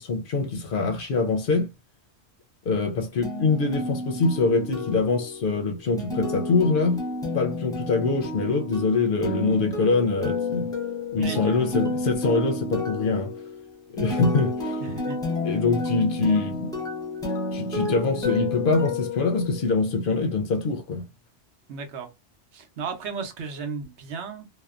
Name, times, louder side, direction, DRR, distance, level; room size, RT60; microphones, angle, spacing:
voice 1, 0.0-1.7 2.7-7.0 7.3-10.7 11.1-13.3 13.9-14.8 15.4-16.7 17.5-21.1, left 4 dB, 60° left, 0.6 m, -24 dB
sound 1, 3.2-19.9, left 2 dB, 5° left, 0.5 m, -31 dB
voice 2, 11.2-11.8 14.8-15.2 21.7-22.1 22.5-24.5, right 5 dB, 80° right, 1.0 m, -35 dB
2.7 x 2.1 x 2.3 m
omnidirectional pair, 1.2 m